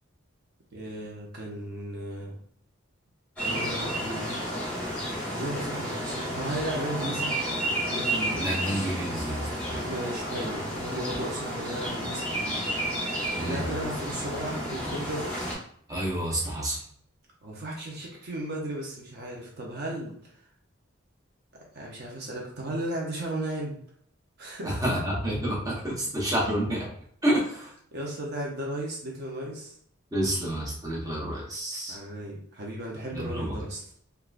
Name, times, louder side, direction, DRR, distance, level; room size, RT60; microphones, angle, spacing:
voice 1, 0.7-2.4 3.4-4.3 5.3-7.3 7.9-8.9 9.7-12.6 13.4-15.3 17.4-20.3 21.7-23.8 24.4-25.0 27.9-29.8 31.9-33.8, right 1 dB, 50° right, -2 dB, 0.6 m, -35 dB
sound 1, 3.4-15.5, equal, 5° left, 1.1 m, -31 dB
voice 2, 8.3-9.9 13.4-13.7 15.9-16.8 24.6-26.9 27.2-27.7 30.1-32.0 33.1-33.6, right 1 dB, 15° right, -5 dB, 0.8 m, -29 dB
3.5 x 2.3 x 2.4 m, 0.64 s
head